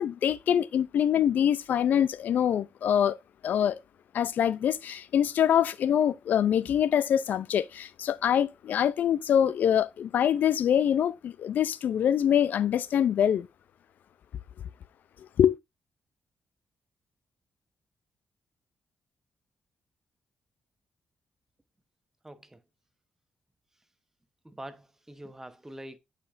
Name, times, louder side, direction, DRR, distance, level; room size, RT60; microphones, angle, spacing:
voice 1, 0.0-3.2 3.4-3.8 4.1-13.5 15.4-15.6, left 9 dB, 70° left, 0.4 m, -24 dB
voice 2, 22.2-22.6 24.4-26.0, right 1 dB, 15° right, 0.9 m, -44 dB
8.4 x 5.2 x 2.5 m
cardioid pair, 75°, 3 cm